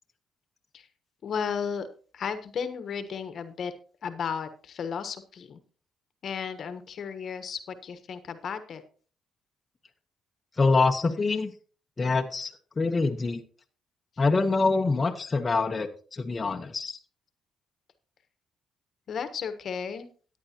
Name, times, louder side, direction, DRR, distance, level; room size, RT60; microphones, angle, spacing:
voice 1, 1.2-1.9 2.1-3.7 4.0-5.6 6.2-8.8 19.1-20.1, left 6 dB, 60° left, 10 dB, 1.3 m, -34 dB
voice 2, 10.6-11.5 12.0-12.5 12.8-13.4 14.2-17.0, left 3 dB, 30° left, 3 dB, 1.0 m, -25 dB
14.0 x 9.7 x 2.9 m, 0.40 s
cardioid pair, 90°, 0 cm